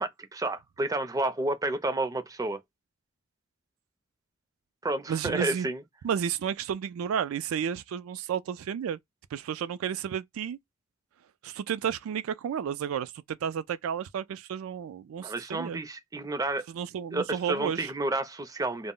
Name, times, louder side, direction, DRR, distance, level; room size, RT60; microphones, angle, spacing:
voice 1, 0.0-2.6 4.8-5.8 15.2-16.6 17.1-18.9, right 2 dB, 15° right, 0.4 m, -30 dB
voice 2, 5.1-5.7 6.0-9.0 9.3-10.6 11.4-15.8 16.7-17.9, right 8 dB, 85° right, 0.3 m, -32 dB
2.1 x 2.0 x 3.6 m
head